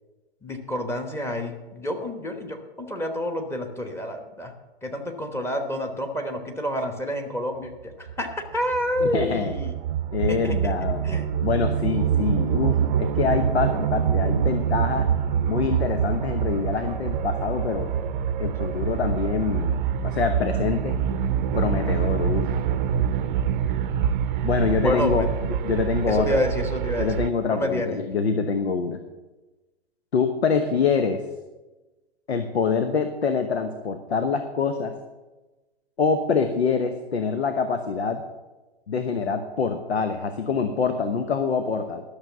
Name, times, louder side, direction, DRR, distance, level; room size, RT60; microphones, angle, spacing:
voice 1, 0.4-4.5 4.8-9.7 10.3-11.3 24.8-25.3 26.1-27.2 27.5-28.0, left 1 dB, 10° left, 4 dB, 1.1 m, -29 dB
sound 1, 8.1-27.3, right 8 dB, 50° right, 0.7 m, -25 dB
voice 2, 9.0-9.5 10.1-11.1 11.4-15.1 15.5-17.9 18.4-21.0 21.5-22.5 24.4-25.3 25.6-26.4 27.0-29.0 30.1-31.2 32.3-34.9 36.0-38.2 38.9-42.0, left 5 dB, 80° left, 8 dB, 1.0 m, -25 dB
12.0 x 6.6 x 7.1 m, 1.2 s
hypercardioid pair, 120°, 32 cm